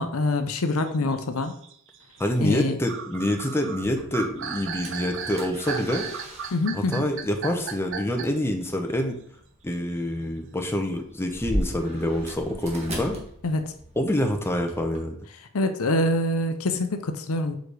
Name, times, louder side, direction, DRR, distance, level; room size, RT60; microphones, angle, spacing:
voice 1, 0.0-1.5 2.4-2.8 6.5-7.0 13.4-13.6 15.5-17.6, left 2 dB, 70° left, 8 dB, 0.7 m, -25 dB
sound 1, 0.7-8.5, right 6 dB, 60° right, 0.6 m, -36 dB
voice 2, 2.2-6.1 6.7-9.2 9.6-13.2 14.0-15.2, left 1 dB, 10° left, 3 dB, 0.8 m, -26 dB
sound 2, 3.8-15.0, equal, 30° right, 1.5 m, -39 dB
5.1 x 4.8 x 4.7 m, 0.65 s
head